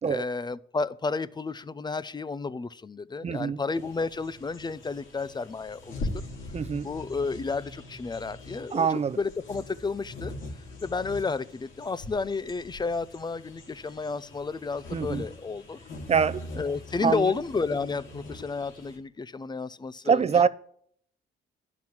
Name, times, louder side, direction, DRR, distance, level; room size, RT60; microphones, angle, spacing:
voice 1, 0.0-6.2 6.8-10.3 10.8-15.8 16.5-20.5, left 4 dB, 20° left, 0.5 m, -32 dB
voice 2, 3.2-3.6 6.5-6.9 8.7-9.2 14.9-15.2 16.1-16.4 17.0-17.3 20.1-20.5, right 6 dB, 30° right, 0.6 m, -24 dB
sound 1, 3.7-19.0, left 1 dB, 75° left, 3.1 m, -42 dB
10.5 x 6.0 x 7.3 m
cardioid pair, 90°, 20 cm